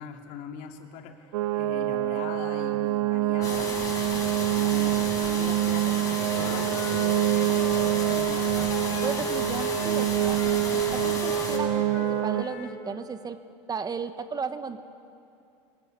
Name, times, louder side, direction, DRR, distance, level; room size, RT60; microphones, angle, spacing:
voice 1, 0.0-3.7 4.3-8.4 11.7-12.0, left 7 dB, 60° left, 4 dB, 2.7 m, -42 dB
sound 1, 1.3-12.4, right 13 dB, 75° right, 1.3 m, -26 dB
sound 2, 3.4-11.6, left 3 dB, 20° left, 7.0 m, -34 dB
Wind instrument woodwind instrument, 6.3-9.3 9.5-12.7, left 4 dB, 85° left, 3.0 m, -39 dB
voice 2, 9.0-10.4 10.7-13.4 13.7-14.8, right 5 dB, 25° right, 10 dB, 1.3 m, -35 dB
25.0 x 18.0 x 9.5 m, 2.6 s
hypercardioid pair, 90°, 15 cm